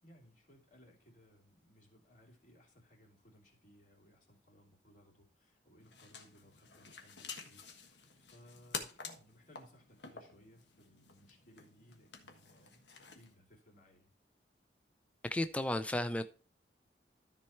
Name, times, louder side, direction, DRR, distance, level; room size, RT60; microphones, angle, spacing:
voice 1, 0.0-14.1, equal, 50° left, 2.9 m, -63 dB
sound 1, 5.8-13.3, left 5 dB, 80° left, 1.5 m, -49 dB
voice 2, 15.2-16.2, left 1 dB, 10° left, 0.4 m, -33 dB
13.0 x 4.5 x 4.3 m
head